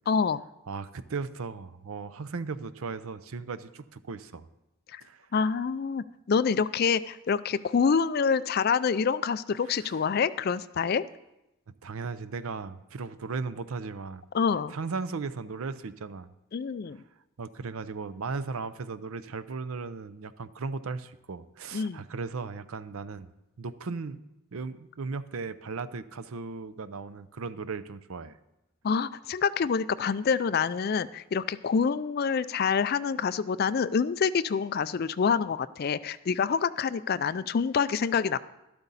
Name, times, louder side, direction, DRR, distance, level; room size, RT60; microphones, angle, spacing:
voice 1, 0.1-0.4 4.9-5.0 5.3-11.0 14.3-14.7 16.5-17.0 21.7-22.0 28.8-38.4, left 6 dB, 45° left, 15 dB, 0.3 m, -26 dB
voice 2, 0.7-4.5 5.0-5.3 9.7-9.9 11.8-14.2 14.7-16.3 17.4-24.2 24.5-28.4, right 4 dB, 75° right, 14 dB, 0.6 m, -36 dB
12.5 x 12.0 x 4.0 m, 0.92 s
head